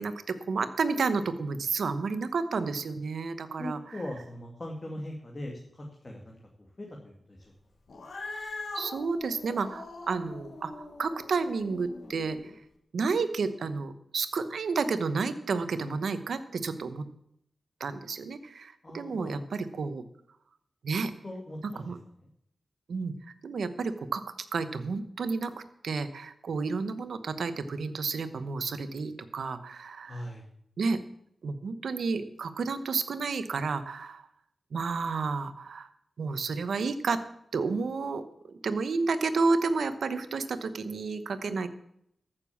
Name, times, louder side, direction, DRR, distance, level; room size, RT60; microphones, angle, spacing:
voice 1, 0.0-3.8 8.7-12.4 12.9-17.0 17.8-20.0 20.8-21.1 21.6-22.0 22.9-23.1 23.4-24.2 24.5-25.5 25.8-30.2 30.8-31.0 31.4-34.2 34.7-35.9 36.2-37.2 37.5-41.7, right 4 dB, 85° right, 11 dB, 1.0 m, -31 dB
voice 2, 3.6-7.5 18.8-19.4 21.2-21.9 30.0-30.5, left 1 dB, 30° left, -1 dB, 2.2 m, -40 dB
Cat, 7.9-12.5, left 2 dB, 75° left, 2.4 m, -42 dB
14.0 x 6.8 x 7.2 m, 0.73 s
wide cardioid pair, 85°, 0 cm